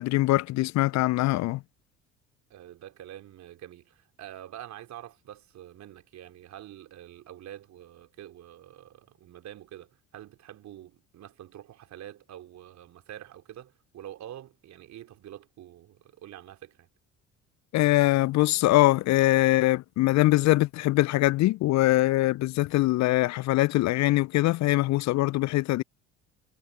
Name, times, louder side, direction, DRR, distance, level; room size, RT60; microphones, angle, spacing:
voice 1, 0.0-1.6 17.7-25.8, left 18 dB, 50° left, 0.9 m, -23 dB
voice 2, 2.5-16.9, right 12 dB, 50° right, 4.0 m, -46 dB
figure-of-eight pair, 60°, 37 cm